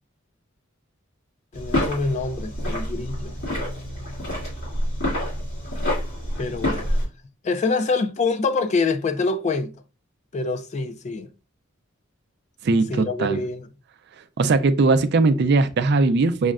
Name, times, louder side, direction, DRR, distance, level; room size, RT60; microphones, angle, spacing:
sound 1, 1.5-7.0, left 1 dB, 65° left, 2.2 m, -27 dB
voice 1, 1.5-3.4 6.4-7.0 7.4-9.7 10.3-11.3 12.9-13.7, left 3 dB, 35° left, 0.3 m, -25 dB
voice 2, 12.6-13.4 14.4-16.5, right 3 dB, 55° right, 0.4 m, -19 dB
6.2 x 2.1 x 2.3 m
head